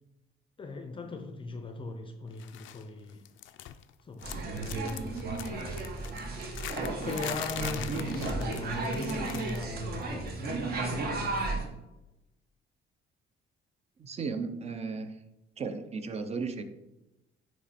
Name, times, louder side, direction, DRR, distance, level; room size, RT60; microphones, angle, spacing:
voice 1, 0.6-3.2 4.0-5.1 6.9-10.6 10.9-11.5, left 3 dB, 25° left, 6 dB, 0.5 m, -39 dB
sound 1, 2.4-2.8 3.1-3.9 4.2-9.8 10.0-10.3 11.4-11.5, left 12 dB, 75° left, 0.4 m, -42 dB
sound 2, 4.2-11.7, right 3 dB, 50° right, 1.1 m, -34 dB
voice 2, 14.0-15.2 15.6-16.6, right 4 dB, 30° right, 9 dB, 0.6 m, -35 dB
9.2 x 3.1 x 4.2 m, 0.97 s
cardioid pair, 145°, 20 cm